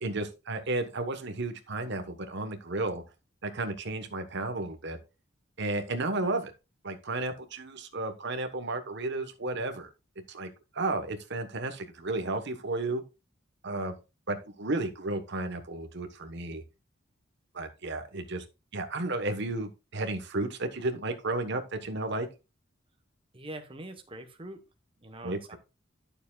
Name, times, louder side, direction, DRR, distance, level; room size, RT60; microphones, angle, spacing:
voice 1, 0.0-3.0 3.4-5.0 5.6-6.5 6.8-9.9 10.3-13.0 13.6-14.0 14.3-16.6 17.5-18.4 18.7-22.3 25.2-25.6, right 2 dB, 60° right, 7 dB, 1.2 m, -33 dB
voice 2, 23.3-24.6 25.0-25.6, right 1 dB, 25° right, 5 dB, 1.1 m, -43 dB
11.0 x 6.9 x 2.4 m, 0.28 s
head